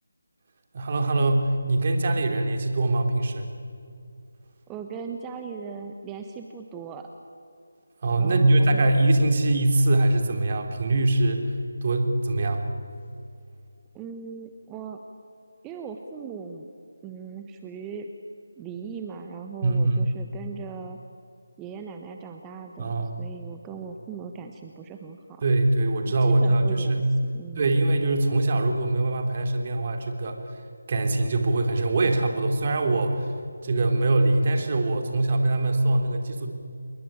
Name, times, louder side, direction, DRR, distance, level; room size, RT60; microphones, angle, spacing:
voice 1, 0.7-3.5 8.0-11.5 11.8-12.6 19.6-20.1 22.8-23.2 25.4-27.1 27.6-30.4 30.9-33.3 33.6-36.5, right 2 dB, 40° right, 4 dB, 3.4 m, -23 dB
voice 2, 4.7-7.1 8.2-8.9 13.9-15.0 15.6-16.7 17.0-18.1 18.6-21.0 21.6-25.4 26.0-27.0 27.3-27.8, right 6 dB, 10° right, 4 dB, 1.2 m, -39 dB
28.5 x 22.0 x 9.0 m, 2.4 s
figure-of-eight pair, 160°, 0 cm